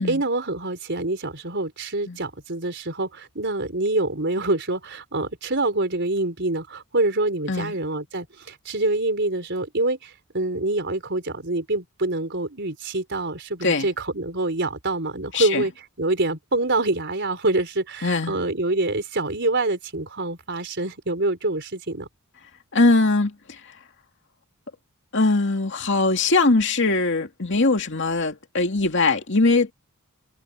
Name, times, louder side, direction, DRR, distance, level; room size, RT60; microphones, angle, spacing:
voice 1, 0.0-15.7 16.0-22.1, right 2 dB, 55° right, 4.6 m, -26 dB
voice 2, 15.3-15.6 18.0-18.4 22.7-23.6 25.1-29.7, left 3 dB, 55° left, 2.4 m, -21 dB
head